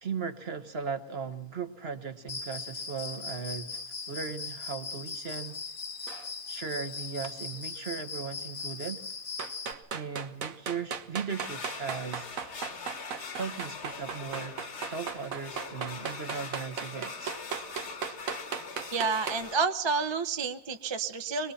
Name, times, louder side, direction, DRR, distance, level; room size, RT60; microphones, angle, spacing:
voice 1, 0.0-3.8 4.1-5.6 6.5-9.0 9.9-12.3 13.3-14.6 14.9-17.3, right 6 dB, 45° right, 9 dB, 1.4 m, -37 dB
Cricket, 2.3-9.7, left 4 dB, 70° left, 2.3 m, -39 dB
sound 1, 6.1-6.3 9.4-19.4, right 6 dB, 70° right, 1.5 m, -37 dB
sound 2, 11.3-19.6, left 5 dB, 50° left, 1.6 m, -42 dB
voice 2, 18.9-21.5, right 5 dB, 25° right, 7 dB, 0.7 m, -29 dB
24.0 x 20.0 x 5.8 m, 0.62 s
omnidirectional pair, 1.5 m